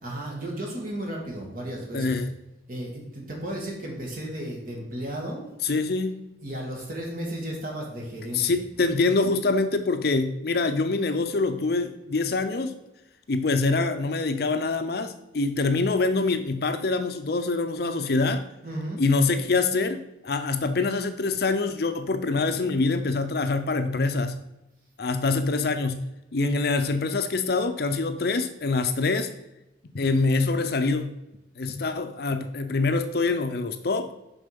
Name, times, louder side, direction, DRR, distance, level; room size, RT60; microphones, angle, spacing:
voice 1, 0.0-2.2 2.7-5.5 6.4-8.6 18.6-19.0, right 1 dB, 45° right, -2 dB, 2.4 m, -34 dB
voice 2, 1.9-2.3 5.6-6.1 8.3-12.8 13.3-18.4 19.0-20.0 20.2-24.4 25.0-29.3 29.9-31.2 31.6-34.1, left 3 dB, 55° left, 8 dB, 0.5 m, -25 dB
7.2 x 5.4 x 5.2 m, 0.94 s
head